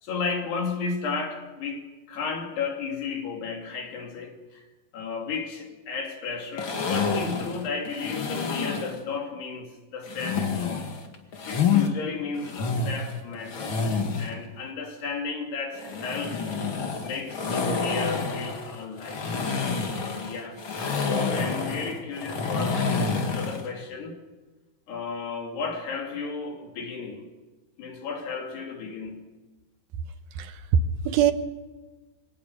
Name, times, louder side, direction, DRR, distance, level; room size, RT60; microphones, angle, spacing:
voice 1, 0.0-4.6 4.9-11.0 11.5-13.8 14.2-16.4 17.0-19.5 19.9-20.7 21.0-24.2 24.9-27.3 27.8-29.3, left 5 dB, 75° left, 4.8 m, -34 dB
sound 1, 6.6-9.0 10.1-11.9 12.3-14.3 15.7-23.7, left 5 dB, 40° left, 2.1 m, -28 dB
voice 2, 30.3-31.3, right 7 dB, 70° right, 2.7 m, -23 dB
24.0 x 18.0 x 6.8 m
omnidirectional pair, 4.7 m